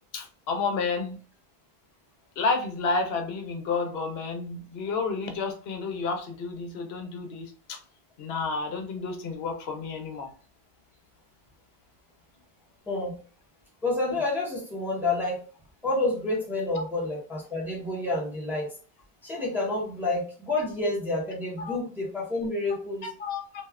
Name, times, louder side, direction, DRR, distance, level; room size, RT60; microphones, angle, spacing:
voice 1, 0.1-1.2 2.4-7.8 8.2-10.3 16.7-16.8 19.3-19.4 21.6-21.7 23.0-23.7, left 4 dB, 80° left, 4 dB, 0.8 m, -31 dB
voice 2, 13.8-15.4 15.8-18.7 19.2-23.1, left 2 dB, ahead, -4 dB, 0.7 m, -29 dB
3.0 x 2.3 x 2.3 m, 0.39 s
omnidirectional pair, 1.0 m